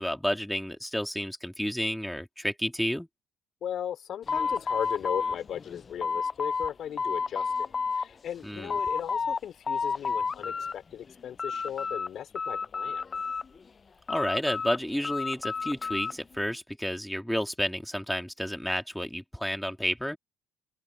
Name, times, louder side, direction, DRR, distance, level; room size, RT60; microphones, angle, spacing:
voice 1, 0.0-3.1 8.4-8.7 14.1-20.2, equal, ahead, 3.6 m, -31 dB
voice 2, 3.6-13.0, left 9 dB, 55° left, 4.8 m, -37 dB
sound 1, 4.3-6.7 7.0-8.1 8.4-9.4 9.7-10.7 11.1-12.1 12.4-13.6 14.1-16.2, left 5 dB, 35° left, 0.9 m, -31 dB
open air
hypercardioid pair, 55°, 0 cm